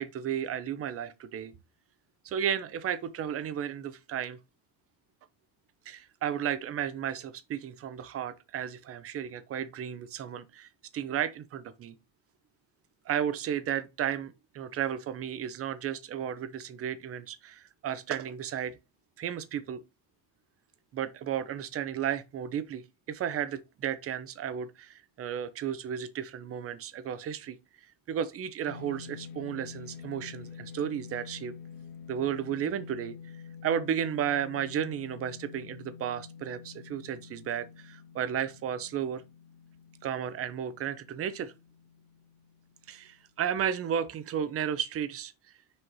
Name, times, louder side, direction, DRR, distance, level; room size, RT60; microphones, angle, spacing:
voice 1, 0.0-1.5 2.2-4.4 5.9-12.0 13.0-18.8 19.2-19.8 20.9-27.6 28.1-31.5 32.1-33.2 33.6-39.2 40.0-41.5 42.9-45.3, right 9 dB, 35° right, 0.8 m, -33 dB
sound 1, 28.7-43.1, left 7 dB, 25° left, 1.7 m, -48 dB
6.4 x 4.5 x 4.6 m
cardioid pair, 150°, 41 cm